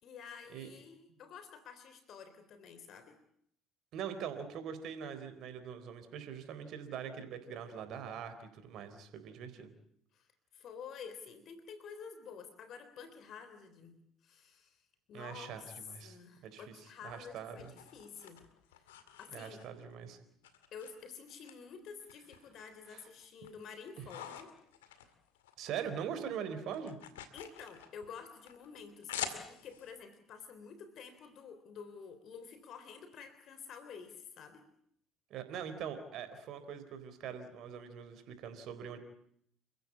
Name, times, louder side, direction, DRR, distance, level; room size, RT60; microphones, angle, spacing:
voice 1, 0.0-3.2 10.1-10.3 10.5-13.9 14.2-14.8 15.1-15.7 16.0-18.4 18.7-18.9 19.2-19.6 20.7-24.5 27.3-34.7, left 6 dB, 55° left, 10 dB, 3.5 m, -50 dB
voice 2, 3.9-9.7 15.1-17.7 19.3-20.2 22.9-23.1 24.0-24.1 25.6-27.0 35.3-39.0, right 8 dB, 60° right, 10 dB, 4.0 m, -43 dB
sound 1, 17.1-19.9 20.4-21.5 21.9-22.9 23.2-25.8 26.1-29.9, left 9 dB, 80° left, 2.1 m, -47 dB
29.5 x 15.0 x 8.7 m, 0.68 s
hypercardioid pair, 60°, 0 cm